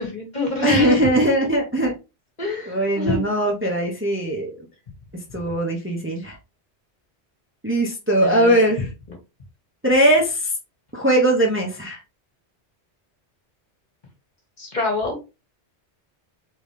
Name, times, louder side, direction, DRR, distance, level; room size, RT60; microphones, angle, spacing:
voice 1, 0.0-1.1 2.4-3.3 8.2-8.7 14.6-15.2, left 2 dB, 40° left, 1 dB, 1.6 m, -25 dB
voice 2, 0.6-1.9 2.7-4.6 5.3-6.4 7.6-8.9 9.8-10.5 10.9-12.0, right 1 dB, 10° right, 0 dB, 0.9 m, -20 dB
3.9 x 3.7 x 3.2 m, 0.27 s
omnidirectional pair, 1.1 m